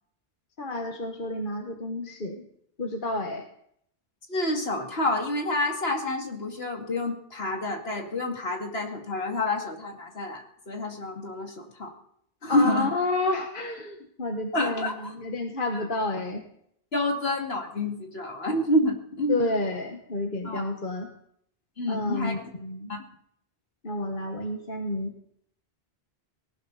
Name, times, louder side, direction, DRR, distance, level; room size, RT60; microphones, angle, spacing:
voice 1, 0.6-2.5 2.8-3.4 12.5-16.4 19.3-21.1 21.9-22.9 23.8-25.1, left 2 dB, 55° left, 4 dB, 1.6 m, -30 dB
voice 2, 4.3-11.9 12.4-12.9 14.5-15.1 15.7-15.8 16.9-19.5 20.4-20.7 21.8-22.5 22.9-23.0, left 2 dB, 70° left, 2 dB, 2.7 m, -28 dB
19.0 x 18.0 x 4.1 m, 0.69 s
omnidirectional pair, 1.1 m